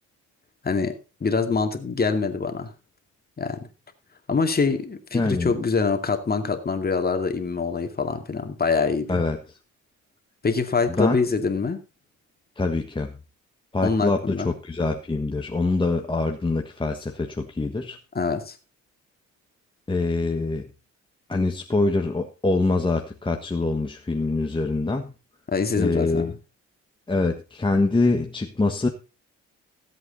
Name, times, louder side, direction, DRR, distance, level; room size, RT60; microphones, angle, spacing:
voice 1, 0.6-2.7 3.4-3.6 4.3-9.2 10.4-11.8 13.8-14.5 18.1-18.6 25.5-26.3, left 4 dB, 30° left, 6 dB, 2.3 m, -25 dB
voice 2, 5.1-5.5 9.1-9.4 11.0-11.2 12.6-13.1 13.7-18.0 19.9-20.7 21.3-25.1 25.8-26.3 27.1-28.9, left 3 dB, 15° left, 3 dB, 1.4 m, -24 dB
16.0 x 8.2 x 4.1 m, 0.31 s
cardioid pair, 90°, 30 cm